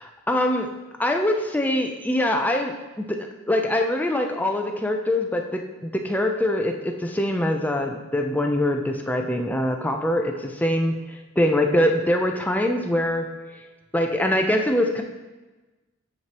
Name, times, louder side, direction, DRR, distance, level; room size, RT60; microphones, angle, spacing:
voice 1, 0.0-0.7 1.0-13.3 13.9-15.0, left 1 dB, 10° left, 3 dB, 0.4 m, -23 dB
8.7 x 4.6 x 2.9 m, 1.2 s
head